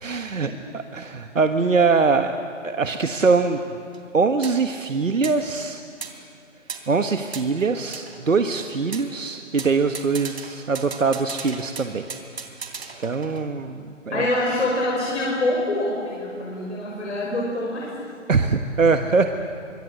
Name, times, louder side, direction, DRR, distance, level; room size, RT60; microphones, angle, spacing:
voice 1, 0.0-2.3 2.6-3.6 4.1-5.8 6.9-12.0 13.0-14.3 18.3-19.3, right 4 dB, 80° right, 7 dB, 1.5 m, -22 dB
sound 1, 3.9-4.0 4.4-4.6 5.2-5.4 6.0-6.2 6.7-6.9 7.3-8.6 8.9-9.1 9.6-13.7, right 5 dB, 55° right, 3.3 m, -37 dB
voice 2, 14.1-18.1, left 1 dB, 65° left, -3 dB, 5.7 m, -25 dB
26.0 x 24.5 x 7.9 m, 2.6 s
figure-of-eight pair, 155°, 38 cm